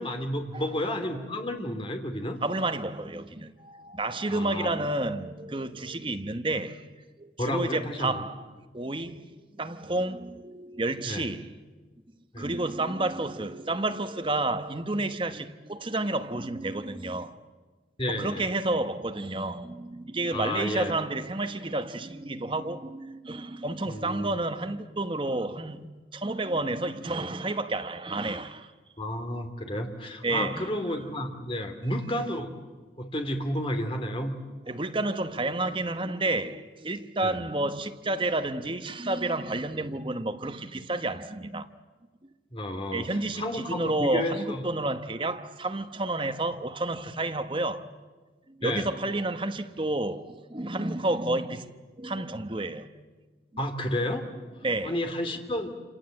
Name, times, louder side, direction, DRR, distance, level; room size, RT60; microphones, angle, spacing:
voice 1, 0.0-2.4 4.3-4.7 7.4-8.2 11.0-11.3 12.3-12.5 18.0-18.4 20.3-20.9 23.9-24.4 29.0-32.5 33.0-34.4 37.2-37.4 42.5-44.6 48.6-48.9 53.6-54.3 54.8-55.7, left 1 dB, 30° left, 2.6 m, -31 dB
voice 2, 1.1-1.5 2.4-6.9 7.2-8.5 8.7-11.5 12.4-17.4 18.1-28.7 30.2-31.0 34.7-41.7 42.9-47.9 48.5-51.7 52.0-52.9 54.6-55.0, right 2 dB, 30° right, 1.0 m, -30 dB
28.0 x 27.5 x 7.7 m
head